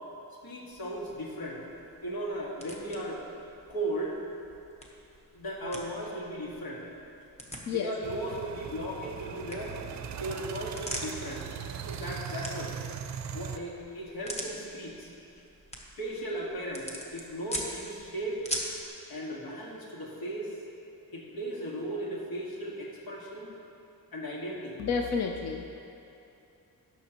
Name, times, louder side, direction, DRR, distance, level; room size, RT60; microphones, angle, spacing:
voice 1, 0.4-1.6 2.0-3.2 3.7-4.2 5.3-6.8 7.7-9.8 10.2-11.4 11.9-12.8 13.3-15.1 16.0-18.4 19.1-20.6 21.1-23.5 24.1-24.8, right 1 dB, 85° left, -3 dB, 1.9 m, -36 dB
sound 1, 0.7-18.9, equal, 20° left, 1.0 m, -44 dB
sound 2, 8.0-13.6, right 7 dB, 50° right, 0.5 m, -39 dB
voice 2, 24.8-25.8, left 5 dB, 50° left, 3 dB, 0.5 m, -30 dB
18.0 x 6.2 x 3.0 m, 2.7 s
wide cardioid pair, 155°, 35 cm